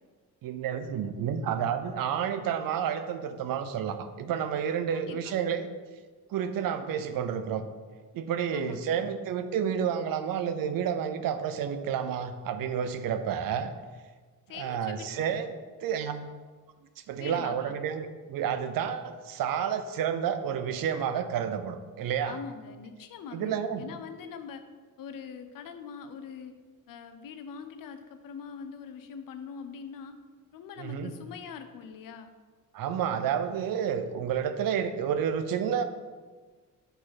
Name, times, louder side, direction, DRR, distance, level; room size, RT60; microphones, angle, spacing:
voice 1, 0.4-5.7 6.3-7.6 8.1-13.7 14.5-15.5 15.8-16.3 17.1-22.4 23.3-23.9 30.8-31.1 32.7-35.8, right 8 dB, 90° right, 10 dB, 0.6 m, -30 dB
voice 2, 4.9-5.4 8.5-9.0 14.5-15.4 17.2-17.7 22.3-24.6 25.0-26.6 26.9-30.2 30.5-32.3, left 6 dB, 80° left, 8 dB, 0.7 m, -43 dB
6.4 x 5.0 x 4.1 m, 1.4 s
cardioid pair, 135°, 33 cm